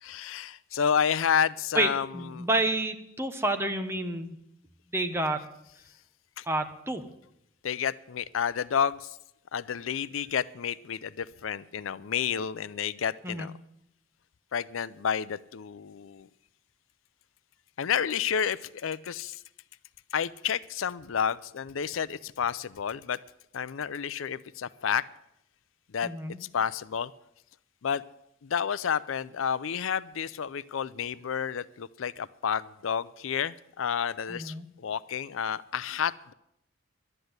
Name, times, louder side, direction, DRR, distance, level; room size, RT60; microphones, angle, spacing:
voice 1, 0.0-2.1 2.3-2.5 6.4-6.5 7.6-9.2 9.5-13.5 14.5-16.3 17.8-19.4 20.1-23.2 23.5-25.1 25.9-26.1 26.4-27.1 27.8-28.0 28.4-36.3, left 7 dB, 75° left, 17 dB, 0.5 m, -30 dB
voice 2, 1.7-4.4 4.9-5.5 6.4-7.0 13.2-13.5 26.0-26.4 34.3-34.7, right 2 dB, 15° right, 7 dB, 1.0 m, -29 dB
12.0 x 10.0 x 7.9 m, 0.78 s
head